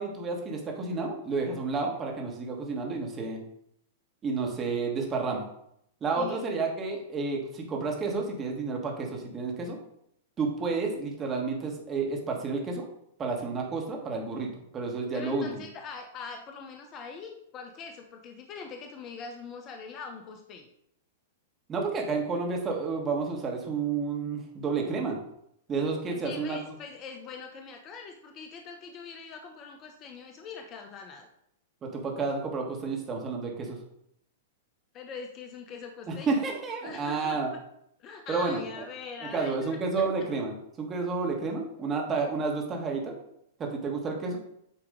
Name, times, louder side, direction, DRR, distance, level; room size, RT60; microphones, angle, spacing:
voice 1, 0.0-3.4 4.2-5.5 6.0-9.8 10.4-12.8 13.2-14.5 14.7-15.6 21.7-25.2 25.7-26.7 31.8-33.8 36.1-37.5 38.3-38.8 39.2-43.1 43.6-44.4, right 4 dB, 25° right, 1 dB, 1.5 m, -30 dB
voice 2, 15.1-20.7 26.1-31.3 34.9-36.4 36.8-37.6 38.0-40.0, left 5 dB, 35° left, 4 dB, 0.7 m, -42 dB
8.4 x 2.9 x 3.8 m, 0.75 s
hypercardioid pair, 110°, 0 cm